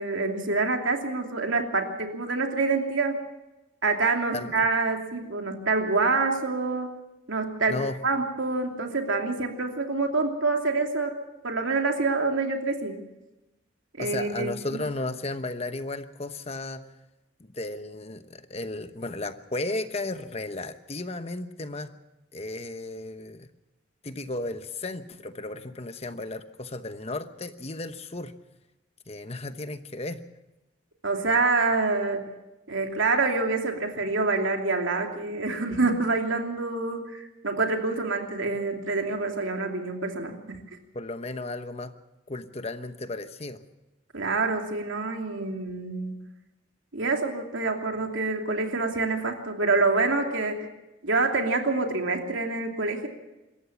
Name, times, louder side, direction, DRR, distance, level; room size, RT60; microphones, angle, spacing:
voice 1, 0.0-3.2 3.8-6.9 7.3-7.8 8.0-11.1 11.4-13.1 14.0-14.8 31.0-32.3 32.7-40.6 44.1-46.1 46.9-50.7 51.0-53.1, right 3 dB, 85° right, 3 dB, 2.9 m, -26 dB
voice 2, 14.0-16.8 17.4-21.9 22.3-23.5 24.0-28.3 29.1-30.2 40.9-41.9 42.3-43.6, left 2 dB, 30° left, 10 dB, 1.0 m, -34 dB
26.0 x 14.0 x 7.2 m, 1.0 s
head